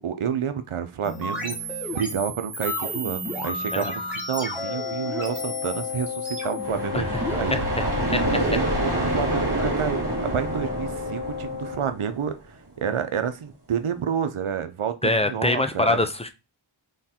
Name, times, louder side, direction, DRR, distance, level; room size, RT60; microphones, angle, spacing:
voice 1, 0.0-1.6 1.9-7.6 8.1-16.0, right 7 dB, 85° right, 0.7 m, -29 dB
sound 1, 1.0-7.5, equal, ahead, 1.7 m, -33 dB
Wind instrument woodwind instrument, 4.6-11.9, left 8 dB, 60° left, 1.4 m, -33 dB
sound 2, 6.6-12.4, right 2 dB, 50° right, 2.1 m, -27 dB
voice 2, 8.1-8.4 15.0-16.3, left 2 dB, 15° left, 0.6 m, -23 dB
3.7 x 3.2 x 4.2 m
wide cardioid pair, 55°, 48 cm